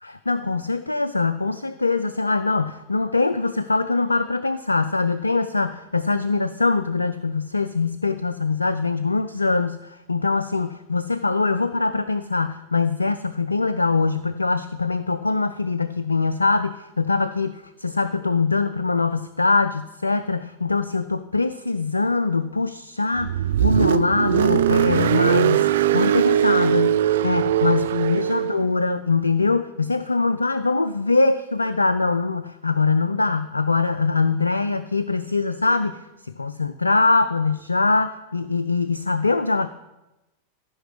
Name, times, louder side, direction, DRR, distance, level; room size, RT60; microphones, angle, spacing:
voice 1, 0.0-39.7, left 3 dB, 80° left, 11 dB, 0.3 m, -23 dB
Car, 23.2-28.6, right 11 dB, 60° right, 0.4 m, -20 dB
14.5 x 5.6 x 3.9 m, 0.97 s
figure-of-eight pair, 90°, 0 cm